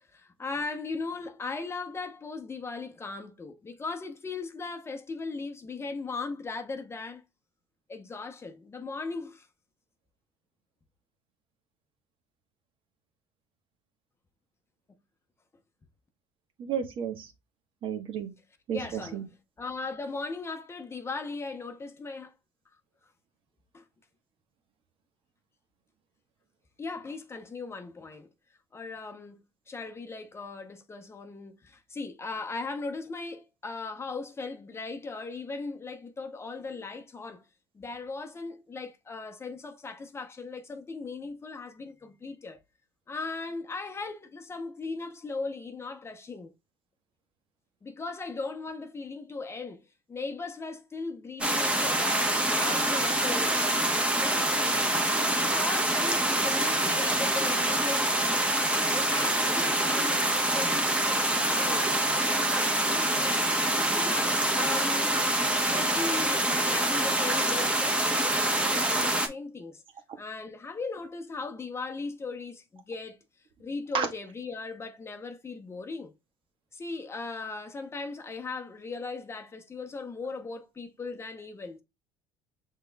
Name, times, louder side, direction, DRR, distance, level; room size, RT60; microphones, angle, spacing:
voice 1, 0.0-7.2 7.9-9.5 18.7-19.2 19.6-22.3 23.7-23.8 26.8-28.3 28.7-29.4 29.7-37.4 37.7-42.6 43.1-46.5 47.8-49.8 50.1-58.5 58.9-65.2 65.7-69.8 70.2-73.2 73.6-76.1 76.7-81.8, left 3 dB, 25° left, 0.8 m, -38 dB
voice 2, 16.6-17.3 17.8-18.3 18.7-19.2 63.4-63.5 73.9-74.1, right 7 dB, 55° right, 1.1 m, -32 dB
sound 1, 51.4-69.3, right 1 dB, 10° right, 1.0 m, -26 dB
6.0 x 3.6 x 2.3 m
supercardioid pair, 95°, 11 cm